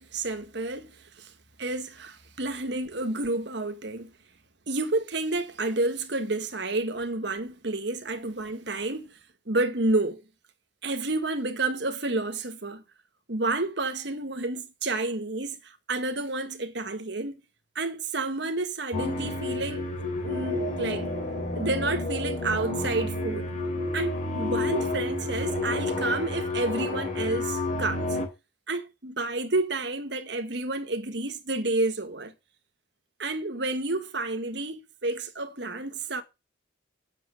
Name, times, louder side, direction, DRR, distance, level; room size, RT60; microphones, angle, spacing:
voice 1, 0.0-1.3 1.6-4.1 4.7-9.2 9.5-10.2 10.8-12.8 13.3-17.4 17.7-19.9 20.2-21.1 21.5-23.5 23.9-28.2 28.7-32.3 33.2-36.2, right 2 dB, 55° right, 1.5 m, -30 dB
sound 1, 18.9-28.3, left 2 dB, 40° left, 3.2 m, -30 dB
8.3 x 6.8 x 6.7 m
head